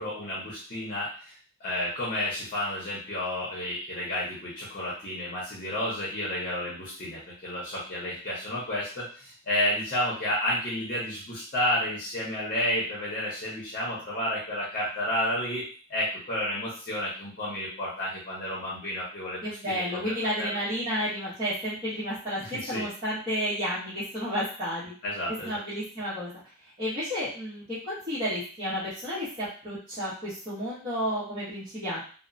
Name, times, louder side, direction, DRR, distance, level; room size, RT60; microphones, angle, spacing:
voice 1, 0.0-1.3 1.6-15.6 15.9-20.1 20.4-20.5 22.4-22.9 25.0-25.6, left 1 dB, 40° left, -7 dB, 0.8 m, -31 dB
voice 2, 19.4-24.9 25.4-26.3 26.8-32.0, equal, 30° right, -12 dB, 1.0 m, -31 dB
2.8 x 2.1 x 2.5 m, 0.41 s
head